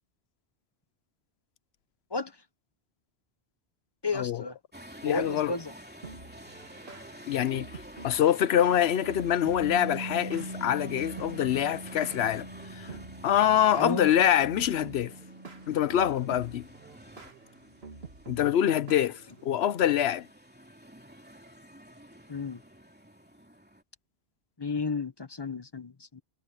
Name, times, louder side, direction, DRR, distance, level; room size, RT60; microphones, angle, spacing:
voice 1, 4.0-4.6 5.0-5.7 13.7-14.1 22.3-22.6 24.6-26.2, left 3 dB, 25° left, 0.8 m, -32 dB
sound 1, 4.7-23.8, equal, 10° right, 2.9 m, -50 dB
voice 2, 5.0-5.5 7.3-7.7 8.0-12.5 12.7-12.9 13.2-15.1 15.7-16.7 18.3-20.3, left 10 dB, 80° left, 0.9 m, -25 dB
sound 2, 6.0-19.7, right 4 dB, 75° right, 2.3 m, -48 dB
Bass guitar, 9.6-15.9, right 2 dB, 40° right, 1.0 m, -42 dB
omnidirectional pair, 1.1 m